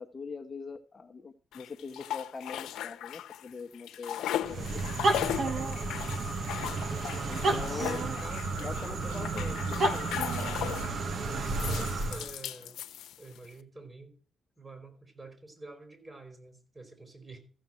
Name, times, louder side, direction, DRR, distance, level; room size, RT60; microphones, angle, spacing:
voice 1, 0.0-4.9 7.3-8.0 8.6-9.3 9.8-10.1, left 4 dB, 30° left, 6 dB, 0.9 m, -42 dB
sound 1, 1.5-3.5 3.7-11.0 11.4-13.5, left 12 dB, 80° left, 0.8 m, -37 dB
sound 2, 4.4-12.3, right 3 dB, 55° right, 1.6 m, -31 dB
voice 2, 7.7-9.8 11.6-12.8 13.2-14.1 14.6-17.4, right 2 dB, 20° right, 7 dB, 4.5 m, -47 dB
14.5 x 5.5 x 7.6 m, 0.42 s
cardioid pair, 90°, 0 cm